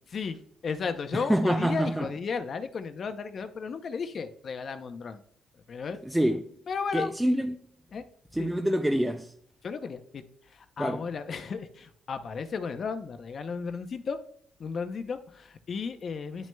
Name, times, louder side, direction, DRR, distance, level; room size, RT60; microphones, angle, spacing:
voice 1, 0.1-5.2 5.7-6.0 6.7-7.1 7.9-8.0 8.4-8.5 9.6-14.2 14.6-16.5, left 5 dB, 45° left, 0.6 m, -34 dB
voice 2, 1.1-2.1 6.1-6.4 6.9-7.6 8.3-9.3 10.8-11.0, right 1 dB, 5° right, 0.3 m, -26 dB
10.5 x 6.1 x 2.2 m
cardioid pair, 120°, 0 cm